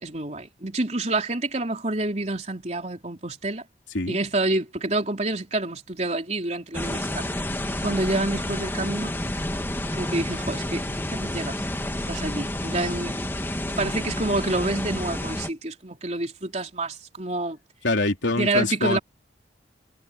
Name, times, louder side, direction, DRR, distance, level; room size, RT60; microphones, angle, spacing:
voice 1, 0.0-3.6 4.1-7.2 7.8-9.1 10.0-10.8 11.1-11.6 12.1-13.2 13.8-17.6 18.4-19.0, right 2 dB, 40° right, 3.9 m, -28 dB
sound 1, 6.7-15.5, left 1 dB, 10° left, 1.5 m, -30 dB
voice 2, 17.8-19.0, left 2 dB, 85° left, 3.5 m, -24 dB
head